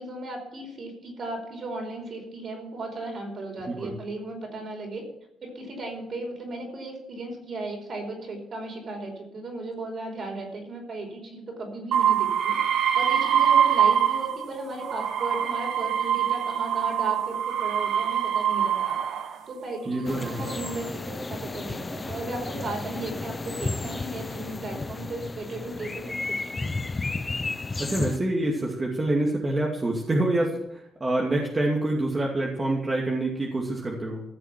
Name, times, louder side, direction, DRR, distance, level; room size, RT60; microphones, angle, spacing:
voice 1, 0.0-5.0 5.4-12.6 12.9-19.0 19.5-26.7, right 2 dB, 50° right, 2 dB, 5.1 m, -36 dB
sound 1, 11.9-14.4 14.8-19.4 20.1-20.7, right 9 dB, 75° right, 1.3 m, -24 dB
voice 2, 19.9-20.4 27.8-34.2, right 1 dB, 25° right, -1 dB, 2.4 m, -26 dB
sound 2, 20.0-28.2, left 3 dB, 25° left, 0.8 m, -33 dB
15.5 x 6.8 x 7.6 m, 0.83 s
cardioid pair, 90°, 0 cm